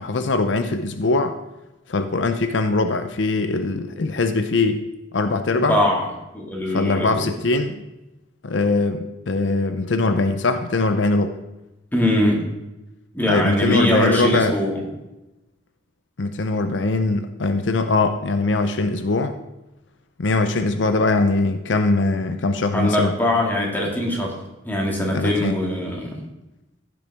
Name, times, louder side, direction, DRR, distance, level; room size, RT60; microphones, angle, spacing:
voice 1, 0.0-1.3 1.9-4.8 5.1-5.8 6.7-7.8 8.4-11.3 13.3-14.6 16.2-19.3 20.2-23.1 25.1-25.6, left 3 dB, 70° left, 8 dB, 0.6 m, -21 dB
voice 2, 5.5-6.0 6.3-7.2 11.9-12.5 13.1-14.8 22.7-24.4 24.6-26.2, left 1 dB, 10° left, -1 dB, 2.1 m, -22 dB
15.0 x 7.0 x 3.5 m, 0.98 s
head